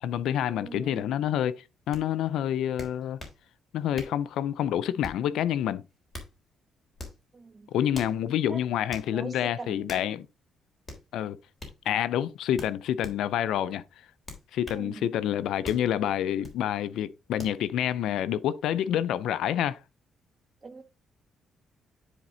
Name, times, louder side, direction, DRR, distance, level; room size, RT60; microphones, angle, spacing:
voice 1, 0.0-3.2 3.7-5.8 7.7-10.3 11.1-11.4 11.9-13.8 14.5-19.8, left 10 dB, 80° left, 0.5 m, -28 dB
voice 2, 0.6-1.0 7.3-7.7 8.5-8.6 9.1-10.1 14.7-15.1 20.6-20.8, right 4 dB, 30° right, 1.3 m, -42 dB
sound 1, 1.9-2.0 2.8-3.4 3.9-4.2 5.0-5.3 5.9-6.3 6.9-7.2 7.9-8.2 8.9-9.1 9.9-10.1 10.8-11.0 11.6-11.8 12.6-13.2 14.2-14.8 15.6-15.9 16.4-16.6 17.4-17.6, left 2 dB, 30° left, 3.5 m, -42 dB
10.0 x 4.2 x 3.8 m
cardioid pair, 90°, 0 cm